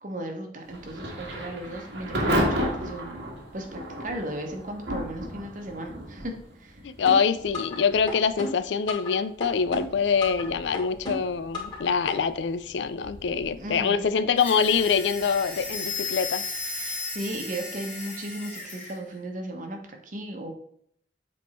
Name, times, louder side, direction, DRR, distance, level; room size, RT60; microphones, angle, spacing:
voice 1, 0.0-3.2 3.5-6.3 6.6-6.8 13.6-14.1 16.8-20.5, right 1 dB, 50° right, 4 dB, 1.1 m, -36 dB
Thunder / Rain, 0.7-17.4, equal, 80° right, 1.7 m, -35 dB
voice 2, 6.8-16.4, left 6 dB, 85° left, 14 dB, 0.4 m, -25 dB
sound 1, 7.0-7.8 8.1-9.1 9.4-10.4 10.7-11.8 12.1-12.2, left 2 dB, 25° left, 2.2 m, -33 dB
sound 2, 14.4-19.0, left 3 dB, 10° left, 1.7 m, -35 dB
7.5 x 3.6 x 4.3 m, 0.65 s
head